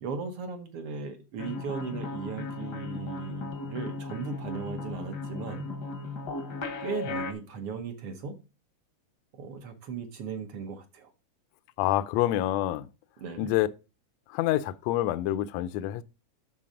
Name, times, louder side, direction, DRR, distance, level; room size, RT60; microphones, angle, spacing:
voice 1, 0.0-5.7 6.8-8.4 9.3-11.1 13.2-13.5, right 5 dB, 65° right, 1.5 m, -37 dB
sound 1, 1.4-7.3, left 3 dB, 60° left, 1.0 m, -36 dB
voice 2, 11.8-12.9 13.4-13.7 14.3-16.0, left 14 dB, 80° left, 1.6 m, -27 dB
12.0 x 4.0 x 5.0 m
omnidirectional pair, 3.7 m